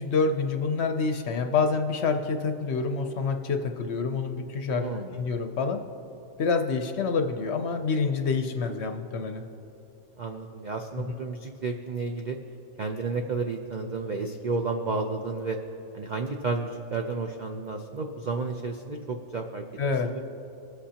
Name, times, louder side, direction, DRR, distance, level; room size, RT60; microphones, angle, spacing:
voice 1, 0.0-4.9 5.1-5.8 6.4-9.4 19.8-20.1, left 4 dB, 60° left, 6 dB, 0.8 m, -27 dB
voice 2, 4.7-5.2 10.2-12.4 12.8-15.6 15.9-19.6 20.0-20.2, right 4 dB, 75° right, 3 dB, 0.4 m, -32 dB
23.5 x 8.1 x 2.9 m, 2.9 s
omnidirectional pair, 1.6 m